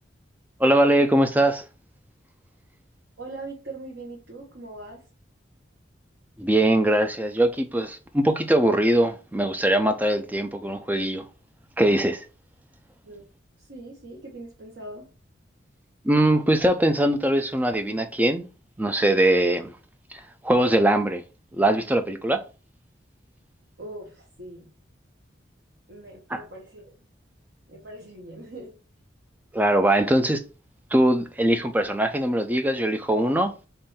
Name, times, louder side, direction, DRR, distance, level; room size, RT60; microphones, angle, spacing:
voice 1, 0.6-1.6 6.4-11.2 11.8-12.2 16.0-18.5 18.8-19.7 20.1-21.2 21.5-22.4 26.3-26.4 29.5-30.4 30.9-33.5, right 1 dB, 10° right, 0.4 m, -21 dB
voice 2, 3.2-5.0 13.0-13.2 13.6-15.1 23.8-24.7 25.9-27.0 27.7-28.8, right 2 dB, 75° right, 1.1 m, -41 dB
3.7 x 2.6 x 4.1 m
head